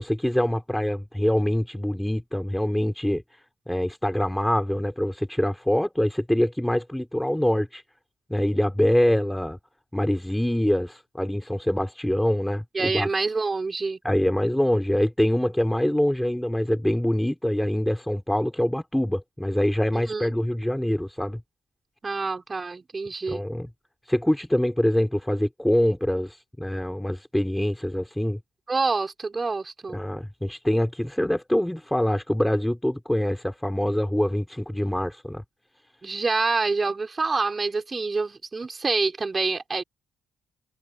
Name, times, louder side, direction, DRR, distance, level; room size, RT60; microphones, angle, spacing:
voice 1, 0.0-3.4 3.7-7.8 8.3-9.6 9.9-13.1 14.0-21.4 23.3-23.7 24.1-28.4 29.9-35.4, left 1 dB, 5° left, 5.3 m, -24 dB
voice 2, 12.7-14.0 19.9-20.3 22.0-23.4 28.7-30.0 36.0-39.8, right 4 dB, 30° right, 5.2 m, -27 dB
cardioid pair, 90°, 0 cm